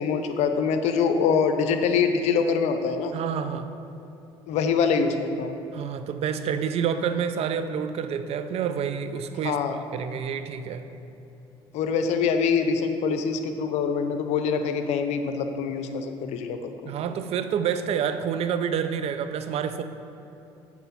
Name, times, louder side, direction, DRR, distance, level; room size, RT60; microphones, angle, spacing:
voice 1, 0.0-3.1 4.5-5.5 9.4-9.8 11.7-16.9, left 5 dB, 70° left, 7 dB, 0.6 m, -24 dB
voice 2, 3.1-3.7 5.7-9.6 9.9-10.9 16.8-19.8, right 7 dB, 60° right, 10 dB, 0.5 m, -28 dB
8.2 x 4.3 x 5.6 m, 2.8 s
supercardioid pair, 70°, 12 cm